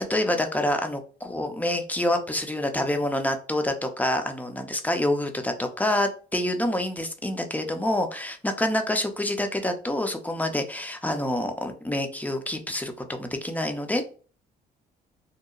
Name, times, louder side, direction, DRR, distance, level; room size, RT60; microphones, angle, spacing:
voice 1, 0.0-14.1, left 1 dB, 10° left, 6 dB, 0.5 m, -27 dB
2.8 x 2.1 x 2.3 m, 0.39 s
supercardioid pair, 65°, 19 cm